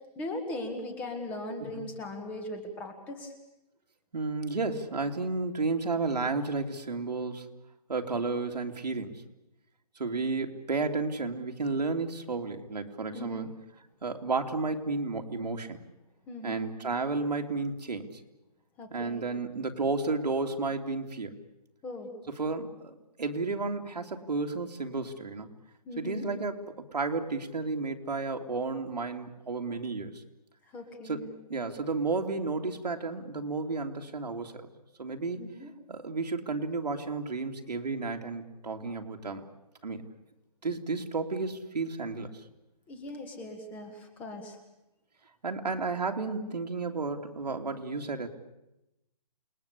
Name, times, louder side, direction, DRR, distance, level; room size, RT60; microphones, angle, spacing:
voice 1, 0.1-3.3 13.1-13.5 16.3-16.7 18.8-19.2 21.8-22.1 25.8-26.3 30.7-31.3 35.4-35.7 42.9-44.6, left 1 dB, 5° left, 6 dB, 1.6 m, -39 dB
voice 2, 4.1-7.5 7.9-9.2 10.0-13.5 14.0-15.8 16.4-18.2 18.9-21.4 22.3-25.5 26.0-30.2 31.0-31.2 31.5-34.7 35.0-35.5 35.9-39.4 39.8-40.0 40.6-42.3 45.4-48.3, right 3 dB, 85° right, 4 dB, 3.1 m, -32 dB
28.5 x 20.5 x 8.5 m, 0.93 s
hypercardioid pair, 175°, 21 cm